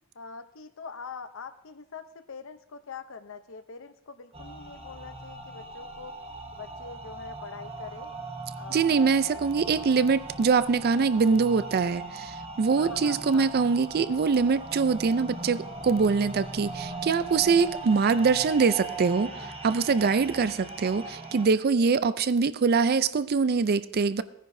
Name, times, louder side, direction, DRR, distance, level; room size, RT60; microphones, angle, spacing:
voice 1, 0.1-6.1 6.6-8.1 8.5-9.5 9.9-10.2 10.9-11.1 12.8-13.5, left 5 dB, 65° left, 11 dB, 0.7 m, -43 dB
sound 1, 4.3-21.5, right 2 dB, 30° right, 1.1 m, -39 dB
voice 2, 8.7-24.2, right 5 dB, 50° right, 15 dB, 0.4 m, -24 dB
16.0 x 10.0 x 2.7 m, 0.80 s
head